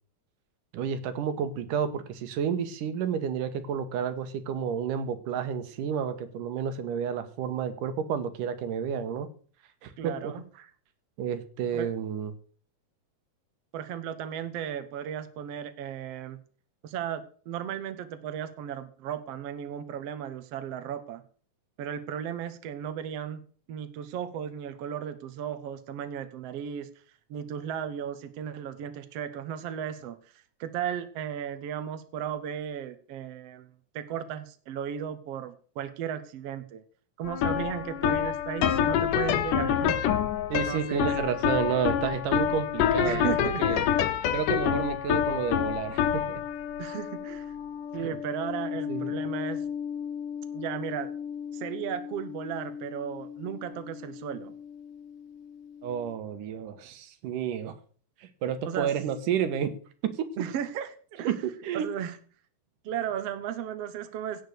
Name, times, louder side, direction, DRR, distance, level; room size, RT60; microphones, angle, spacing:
voice 1, 0.7-9.3 9.8-10.3 11.2-12.3 40.5-43.8 44.3-46.4 48.0-48.1 48.9-49.1 55.8-57.7 58.2-59.7 60.0-60.3 61.2-61.9, right 8 dB, 80° right, 10 dB, 2.8 m, -30 dB
voice 2, 10.0-10.7 11.7-11.9 13.7-16.4 16.8-21.2 21.8-23.4 23.7-26.9 27.3-30.3 30.6-36.8 37.2-40.2 40.7-41.1 43.0-43.9 46.8-47.6 47.9-49.6 50.5-51.1 51.5-54.5 58.6-58.9 60.4-61.3 61.7-62.2 62.8-64.4, right 9 dB, 65° right, 10 dB, 1.7 m, -35 dB
sound 1, 37.2-54.4, left 9 dB, 85° left, 2.6 m, -29 dB
16.5 x 6.5 x 6.6 m, 0.44 s
omnidirectional pair, 3.7 m